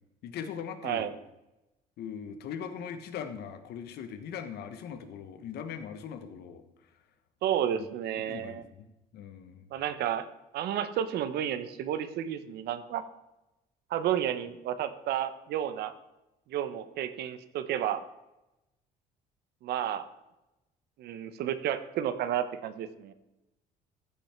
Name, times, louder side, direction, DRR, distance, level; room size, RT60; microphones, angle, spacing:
voice 1, 0.2-1.1 2.0-6.6 7.8-7.9 8.2-8.9 9.1-9.7, left 7 dB, 75° left, 9 dB, 1.2 m, -40 dB
voice 2, 7.4-8.6 9.7-10.3 10.5-13.0 13.9-15.9 16.5-18.0 19.6-20.0 21.0-23.1, right 10 dB, 75° right, 12 dB, 0.9 m, -31 dB
15.0 x 5.6 x 4.5 m, 0.94 s
cardioid pair, 110°, 17 cm